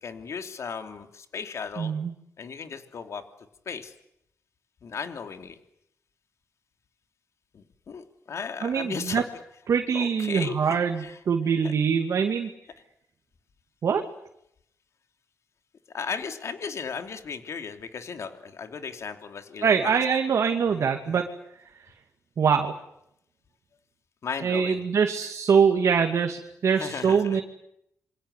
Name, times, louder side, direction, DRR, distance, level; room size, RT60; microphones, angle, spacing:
voice 1, 0.0-1.9 2.4-3.2 3.6-3.9 4.8-5.6 7.5-9.2 9.9-11.2 11.6-11.7 15.9-20.0 20.7-21.3 24.2-24.8 26.7-27.4, left 6 dB, 65° left, 6 dB, 3.1 m, -36 dB
voice 2, 1.8-2.1 8.6-9.2 9.7-12.5 13.8-14.0 19.6-21.3 22.4-22.7 24.4-27.4, right 6 dB, 65° right, 3 dB, 2.6 m, -23 dB
27.5 x 24.5 x 8.3 m, 0.77 s
cardioid pair, 90°, 5 cm